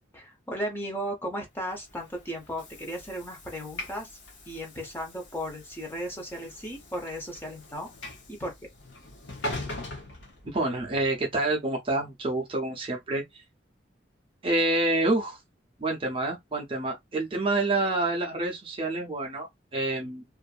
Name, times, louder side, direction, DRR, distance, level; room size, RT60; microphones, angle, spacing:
voice 1, 0.1-4.1 4.5-7.9 8.3-8.5, equal, 10° left, 0.7 m, -35 dB
Train / Sliding door, 1.7-11.0, left 1 dB, 80° left, 0.8 m, -42 dB
voice 2, 10.4-13.4 14.4-15.4 15.8-20.2, right 2 dB, 30° right, 0.6 m, -28 dB
2.5 x 2.5 x 2.3 m
head